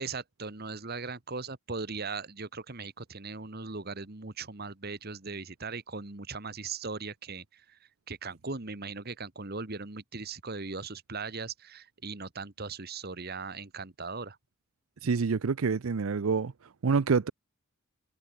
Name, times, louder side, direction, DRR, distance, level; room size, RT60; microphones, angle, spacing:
voice 1, 0.0-7.8 8.1-14.4, right 4 dB, 50° right, 1.7 m, -39 dB
voice 2, 15.0-16.5 16.8-17.3, right 5 dB, 90° right, 0.6 m, -27 dB
head